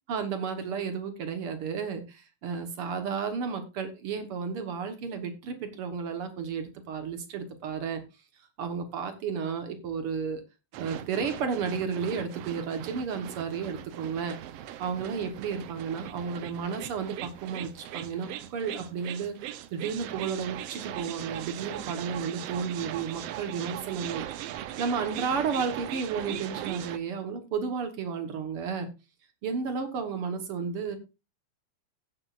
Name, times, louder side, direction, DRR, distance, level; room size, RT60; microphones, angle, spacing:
voice 1, 0.1-8.0 8.6-10.4 10.8-14.4 14.8-24.2 24.8-28.9 29.4-31.0, right 6 dB, 55° right, 7 dB, 1.9 m, -32 dB
sound 1, 10.7-27.0, right 12 dB, 75° right, 1.5 m, -39 dB
16.0 x 8.0 x 2.5 m, 0.28 s
omnidirectional pair, 3.4 m